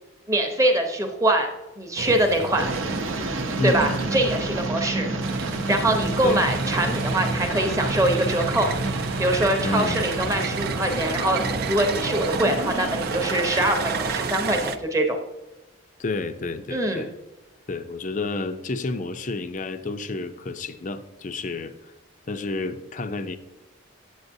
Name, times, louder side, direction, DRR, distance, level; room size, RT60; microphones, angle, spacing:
voice 1, 0.3-2.7 3.6-5.1 5.3-8.7 9.2-11.4 11.7-15.2 16.7-17.1, right 1 dB, 15° right, 4 dB, 0.8 m, -23 dB
sound 1, 2.0-4.7 5.2-14.8, right 5 dB, 50° right, 0.4 m, -32 dB
sound 2, 2.6-14.3, right 2 dB, 75° right, 0.8 m, -29 dB
voice 2, 3.6-4.5 6.2-6.5 9.6-10.1 16.0-17.1 17.7-21.7 22.3-23.4, left 2 dB, 40° left, 10 dB, 0.5 m, -30 dB
8.0 x 7.9 x 2.7 m, 1.0 s
head